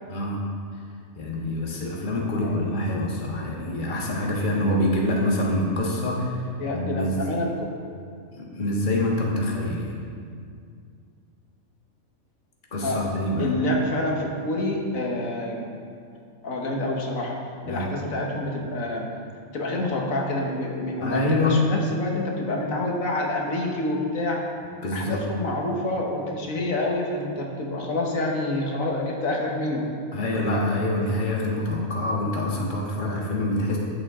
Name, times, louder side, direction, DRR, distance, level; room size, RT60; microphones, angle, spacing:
voice 1, 0.1-0.4 1.1-6.4 6.7-7.1 8.3-9.9 12.7-13.5 17.6-17.9 21.0-21.6 24.8-25.2 30.1-33.8, left 1 dB, 35° left, -3 dB, 1.5 m, -26 dB
voice 2, 6.6-7.7 12.8-13.0 13.4-15.7 16.4-17.4 17.7-19.1 19.5-24.4 24.9-29.9, left 1 dB, 75° left, -1 dB, 1.6 m, -27 dB
13.5 x 7.8 x 3.7 m, 2.3 s
omnidirectional pair, 1.4 m